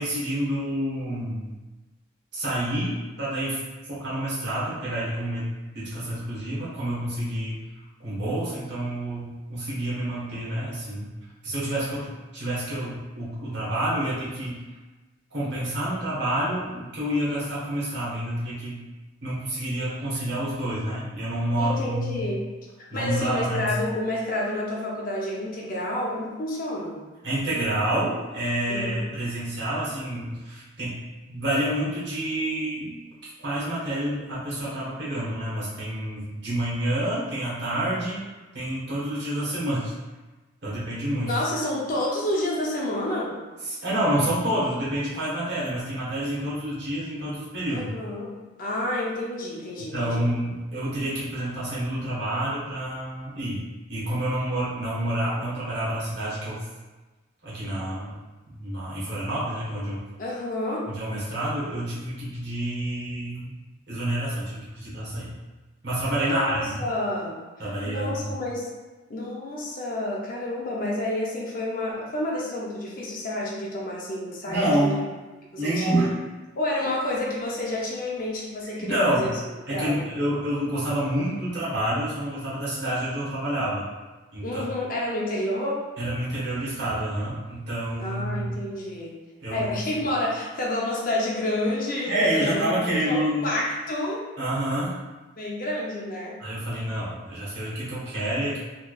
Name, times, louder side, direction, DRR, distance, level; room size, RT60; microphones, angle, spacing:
voice 1, 0.0-1.5 2.3-3.6 3.9-5.5 5.7-7.6 8.0-11.1 11.4-14.6 15.3-18.8 19.2-22.2 22.9-23.8 27.2-31.0 31.3-33.0 33.2-38.2 38.5-39.9 40.6-41.3 43.6-48.0 49.9-53.6 53.9-56.6 57.4-58.2 58.5-60.0 60.9-63.5 63.9-65.3 65.8-66.8 67.6-68.4 74.5-75.0 75.6-76.2 78.8-79.3 79.7-83.9 84.3-84.7 86.0-88.6 89.4-89.7 92.1-93.5 94.4-95.0 96.4-98.6, right 1 dB, 55° right, -8 dB, 1.3 m, -28 dB
voice 2, 21.6-22.4 22.9-27.0 28.7-29.1 41.2-43.3 47.7-48.3 48.6-50.2 60.2-60.9 66.2-67.4 67.8-68.7 69.1-74.9 75.5-76.1 76.6-79.3 79.7-80.1 84.4-85.8 88.0-89.1 89.5-94.2 95.4-96.4, left 1 dB, 45° left, -3 dB, 0.6 m, -29 dB
3.1 x 3.1 x 2.3 m, 1.2 s
head